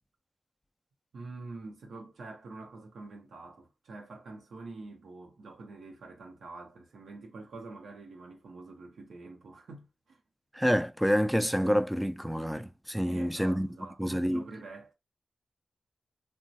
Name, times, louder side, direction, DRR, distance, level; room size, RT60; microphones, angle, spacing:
voice 1, 1.1-10.2 13.0-14.9, right 3 dB, 85° right, 0.8 m, -46 dB
voice 2, 10.5-13.7 14.0-14.4, equal, ahead, 0.4 m, -27 dB
3.0 x 2.2 x 2.7 m
cardioid pair, 55°, 0 cm